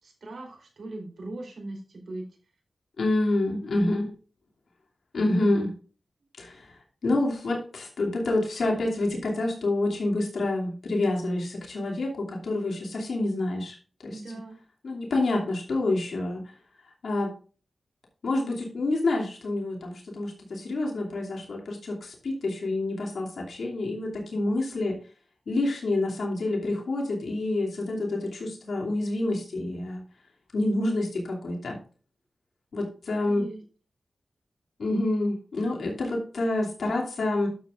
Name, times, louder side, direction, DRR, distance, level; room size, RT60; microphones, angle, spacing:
voice 1, 0.0-2.3 14.1-14.6 33.3-33.6, right 2 dB, 80° right, 2 dB, 3.7 m, -39 dB
voice 2, 3.0-4.1 5.1-5.7 6.4-13.8 14.0-14.2 14.8-16.5 17.0-17.3 18.2-25.0 25.5-30.0 30.5-31.8 32.7-33.5 34.8-37.5, left 2 dB, 85° left, -1 dB, 2.7 m, -28 dB
11.5 x 7.6 x 2.5 m, 0.39 s
cardioid pair, 60°, 0 cm